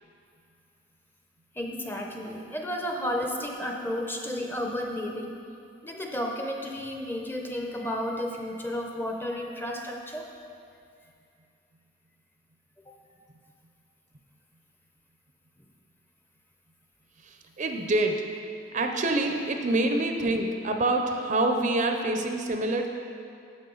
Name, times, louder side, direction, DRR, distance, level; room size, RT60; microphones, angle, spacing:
voice 1, 1.5-5.4 5.8-10.3 12.9-13.0, left 1 dB, 10° left, 2 dB, 0.6 m, -32 dB
voice 2, 17.2-18.3 18.7-22.9, right 2 dB, 40° right, 4 dB, 0.5 m, -26 dB
10.5 x 7.3 x 3.9 m, 2.5 s
head